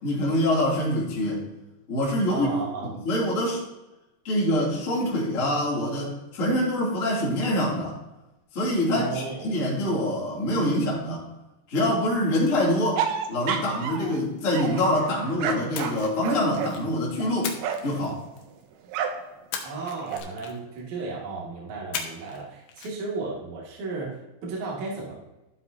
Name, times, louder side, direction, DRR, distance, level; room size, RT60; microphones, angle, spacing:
voice 1, 0.0-1.4 1.9-2.5 3.0-3.6 4.2-8.0 8.5-11.2 11.7-13.0 13.3-17.5 17.8-18.2, left 1 dB, 20° left, -6 dB, 2.4 m, -25 dB
voice 2, 2.3-2.9 8.9-9.5 19.6-25.2, right 3 dB, 45° right, -5 dB, 3.3 m, -34 dB
sound 1, 13.0-14.2 14.5-18.0 18.9-19.3 19.6-20.2, right 7 dB, 90° right, 2.2 m, -31 dB
Splash splatter, 15.7-16.9 17.4-18.6 19.5-20.8 21.9-22.4 22.7-22.9, left 7 dB, 70° left, 3.1 m, -37 dB
13.0 x 7.7 x 2.9 m, 1.0 s
omnidirectional pair, 5.7 m